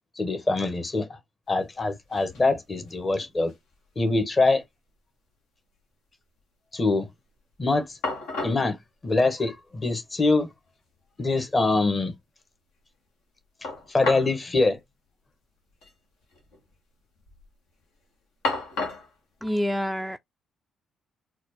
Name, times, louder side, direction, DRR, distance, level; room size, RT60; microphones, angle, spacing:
voice 1, 0.2-1.2 1.5-3.5 4.0-4.6 6.7-7.1 7.6-8.0 8.4-8.8 9.0-10.5 11.2-12.1 13.9-14.8, left 3 dB, 35° left, 1.2 m, -24 dB
sound 1, 1.6-1.7 1.9-2.5 2.8-3.7 4.0-4.1 7.5-7.6 8.0-8.7 9.8-9.9 10.3-10.4 13.6-14.4 14.7-14.8 15.7-15.9 16.2-16.7 17.1-17.5 18.4-19.1, left 3 dB, 80° left, 1.3 m, -33 dB
voice 2, 19.4-20.2, equal, ahead, 0.3 m, -27 dB
4.2 x 2.5 x 2.9 m
hypercardioid pair, 50°, 0 cm